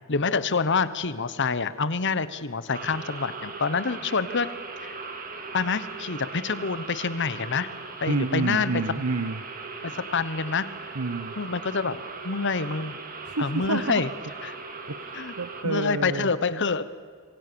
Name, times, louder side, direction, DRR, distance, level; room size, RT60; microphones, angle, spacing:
voice 1, 0.1-4.5 4.8-5.0 5.5-7.7 8.0-8.7 9.8-10.7 11.4-13.0 13.4-14.1 14.4-14.6 15.1-15.3 15.6-16.8, left 4 dB, 55° left, 15 dB, 1.1 m, -27 dB
sound 1, 2.7-15.6, right 4 dB, 40° right, 2.7 m, -39 dB
voice 2, 8.1-9.4 10.9-11.3 13.2-14.0 14.9-16.3, right 3 dB, 90° right, 10 dB, 1.0 m, -29 dB
26.0 x 25.5 x 7.0 m, 2.1 s
head